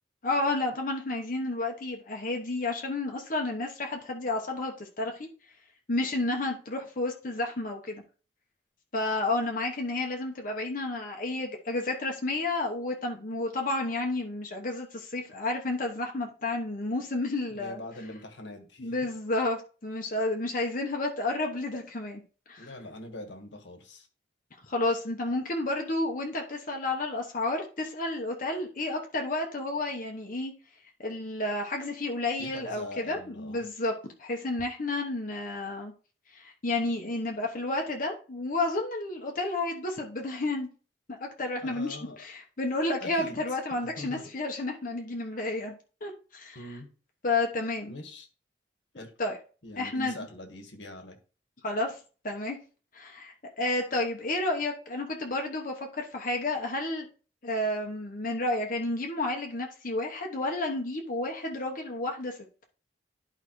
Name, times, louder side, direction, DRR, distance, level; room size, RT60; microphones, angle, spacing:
voice 1, 0.2-5.3 5.9-8.0 8.9-17.8 18.8-22.2 22.5-22.7 24.7-30.5 31.0-33.9 34.2-35.9 36.3-40.7 41.1-45.7 46.0-46.6 47.2-47.9 48.9-49.4 49.8-50.2 51.6-52.0 52.2-52.6 52.9-57.1 57.4-62.4, left 2 dB, 45° left, 1.0 m, -31 dB
voice 2, 17.5-19.0 22.6-24.1 32.4-33.6 41.6-42.2 43.0-43.4 43.8-44.2 46.5-46.9 47.9-48.3 48.9-49.1 49.6-51.2, left 1 dB, 80° left, 1.6 m, -43 dB
11.5 x 4.8 x 3.1 m
head